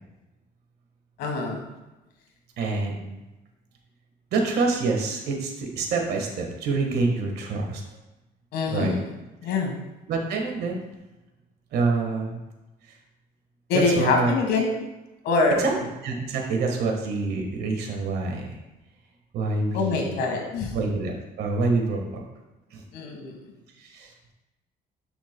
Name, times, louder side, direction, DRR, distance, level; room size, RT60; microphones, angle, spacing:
voice 1, 1.2-1.7 8.5-9.0 9.4-9.7 13.7-14.7 15.2-15.6 19.7-20.7 22.9-23.4, left 3 dB, 85° left, 2 dB, 1.6 m, -24 dB
voice 2, 2.6-3.2 4.3-7.8 8.7-9.0 10.1-10.8 11.7-12.4 13.7-14.4 15.6-18.5 19.3-20.2 20.7-22.2 22.7-22.8 23.8-24.3, right 3 dB, 75° right, 2 dB, 1.5 m, -26 dB
9.5 x 6.0 x 2.2 m, 1.0 s
cardioid pair, 110°, 17 cm